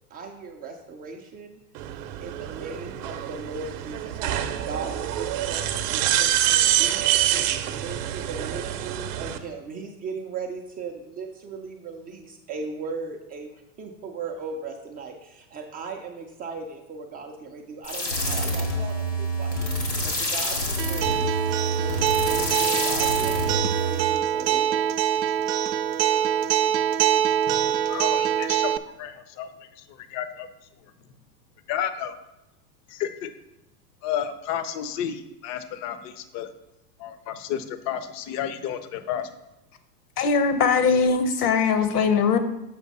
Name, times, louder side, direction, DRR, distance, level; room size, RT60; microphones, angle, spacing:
voice 1, 0.1-1.6 2.2-7.0 7.5-19.6 20.0-21.3 21.8-24.9, right 4 dB, 20° right, 2 dB, 0.4 m, -38 dB
sound 1, 1.7-9.4, right 12 dB, 50° right, 0.8 m, -26 dB
sound 2, 17.8-24.2, equal, 90° left, 2.3 m, -27 dB
Acoustic guitar, 20.8-28.8, right 10 dB, 85° right, 0.6 m, -24 dB
voice 2, 27.5-28.7 29.0-29.5 29.8-30.5 31.7-32.1 32.9-33.3 34.0-36.5 37.0-39.3, left 9 dB, 35° left, 11 dB, 0.6 m, -32 dB
voice 3, 40.2-42.4, left 5 dB, 65° left, 9 dB, 1.0 m, -21 dB
7.2 x 5.1 x 4.0 m, 0.91 s
hypercardioid pair, 100°, 50 cm